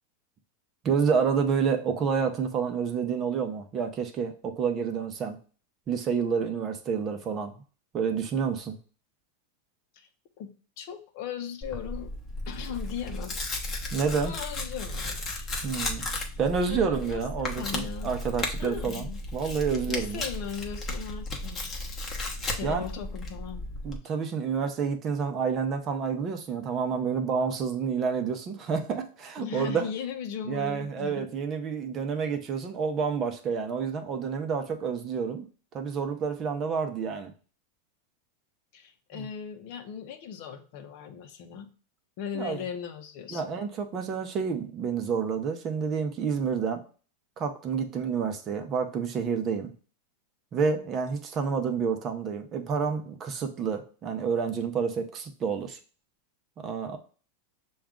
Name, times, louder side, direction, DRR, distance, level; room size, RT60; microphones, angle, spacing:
voice 1, 0.8-5.4 5.9-7.5 7.9-8.8 13.9-14.3 15.6-16.0 16.4-20.2 22.6-22.8 23.8-29.9 30.5-35.5 35.7-37.3 39.1-39.3 42.3-42.6 43.3-46.8 47.4-49.7 50.5-55.8 56.6-57.0, right 6 dB, 30° right, 6 dB, 0.7 m, -29 dB
voice 2, 10.8-12.1 12.5-13.3 14.2-15.5 16.0-16.3 16.6-18.1 18.6-19.2 19.9-21.7 22.6-23.8 29.4-31.3 38.7-41.7 42.2-43.5, left 8 dB, 55° left, 7 dB, 0.7 m, -38 dB
Tearing, 11.6-24.0, left 2 dB, 25° left, 0.9 m, -35 dB
5.9 x 2.3 x 3.7 m, 0.39 s
supercardioid pair, 140°, 0 cm